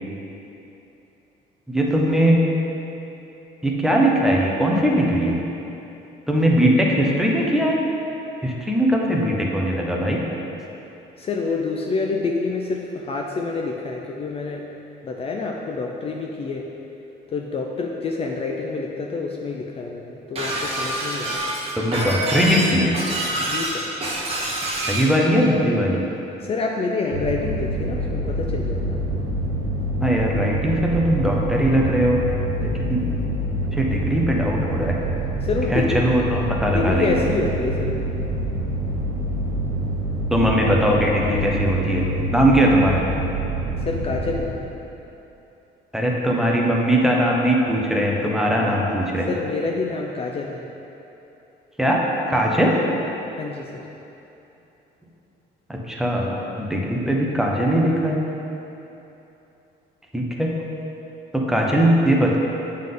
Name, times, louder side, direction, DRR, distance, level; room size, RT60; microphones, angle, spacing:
voice 1, 1.7-2.4 3.6-5.4 6.3-7.8 8.4-10.2 21.8-22.9 24.7-26.0 30.0-32.2 32.6-33.0 33.7-35.0 35.7-37.2 40.3-42.1 42.3-43.0 45.9-49.3 51.8-52.8 55.7-58.2 60.1-60.5 61.3-62.4, equal, 5° right, -2 dB, 0.8 m, -20 dB
voice 2, 11.2-14.6 15.0-16.6 17.3-21.5 23.4-23.9 26.4-29.0 35.4-36.0 36.7-38.1 43.8-44.7 49.3-50.7 53.4-53.8, left 4 dB, 35° left, 0 dB, 0.4 m, -27 dB
Shatter, 20.4-25.1, right 1 dB, 35° right, 1.0 m, -26 dB
sound 1, 27.1-44.4, right 1 dB, 65° right, 1.1 m, -26 dB
7.3 x 3.7 x 3.8 m, 3.0 s
cardioid pair, 110°, 17 cm